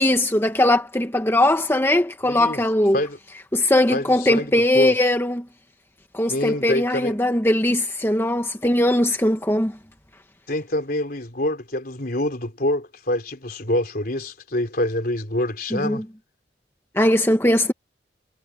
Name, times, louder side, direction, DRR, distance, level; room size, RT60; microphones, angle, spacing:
voice 1, 0.0-3.0 3.5-5.4 6.1-9.7 15.7-16.0 16.9-17.7, left 1 dB, 15° left, 1.4 m, -20 dB
voice 2, 2.2-2.6 2.9-3.2 3.9-4.9 6.3-7.2 10.5-16.0, left 1 dB, 55° left, 3.7 m, -26 dB
head